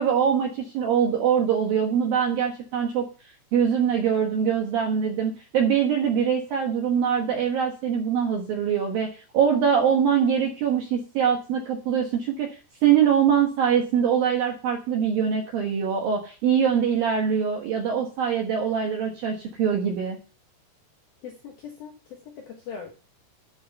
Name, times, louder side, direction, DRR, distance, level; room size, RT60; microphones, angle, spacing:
voice 1, 0.0-3.1 3.5-12.6 12.8-20.2, right 7 dB, 70° right, 1 dB, 2.2 m, -23 dB
voice 2, 21.2-22.9, left 6 dB, 70° left, 1 dB, 2.3 m, -40 dB
11.5 x 5.6 x 6.7 m, 0.37 s
omnidirectional pair, 5.9 m